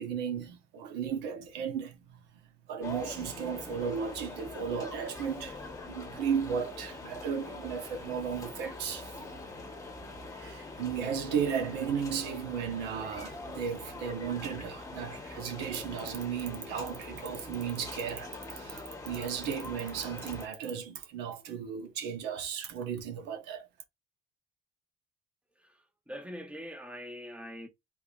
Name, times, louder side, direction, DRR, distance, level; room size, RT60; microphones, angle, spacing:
voice 1, 0.0-2.2 2.7-5.6 5.9-9.1 10.3-23.7, right 7 dB, 90° right, 1.1 m, -35 dB
sound 1, 2.8-20.5, left 2 dB, 20° left, 1.2 m, -44 dB
voice 2, 25.6-27.7, equal, 5° right, 0.9 m, -43 dB
3.8 x 3.3 x 2.5 m
cardioid pair, 110°, 17 cm